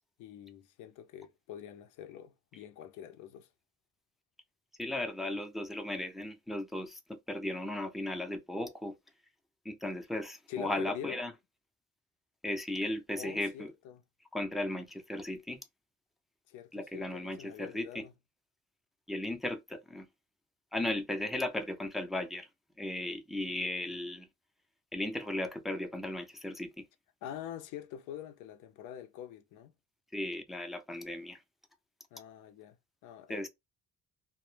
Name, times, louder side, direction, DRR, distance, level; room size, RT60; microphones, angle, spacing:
voice 1, 0.2-3.5 10.5-11.2 13.2-14.0 16.5-18.1 27.2-29.7 32.1-32.8 33.0-33.5, left 10 dB, 90° left, 0.5 m, -45 dB
voice 2, 4.8-9.0 9.7-11.3 12.4-13.7 14.3-15.6 16.7-18.0 19.1-20.1 20.7-22.5 22.8-24.3 24.9-26.9 30.1-31.4 33.3-33.5, left 1 dB, ahead, 0.4 m, -36 dB
2.0 x 2.0 x 3.1 m
cardioid pair, 90°, 30 cm